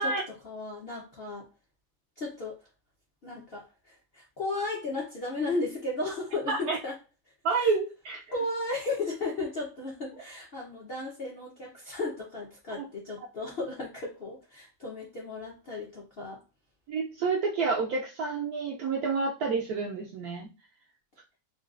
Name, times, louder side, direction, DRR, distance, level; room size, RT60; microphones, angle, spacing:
voice 1, 0.0-1.5 2.2-2.6 3.2-7.0 7.6-7.7 8.3-16.4, left 2 dB, 55° left, -3 dB, 0.6 m, -35 dB
voice 2, 6.5-6.8 7.4-8.2 12.8-12.9 16.9-20.5, right 4 dB, 75° right, 0 dB, 0.9 m, -29 dB
3.8 x 2.3 x 2.4 m, 0.30 s
omnidirectional pair, 2.0 m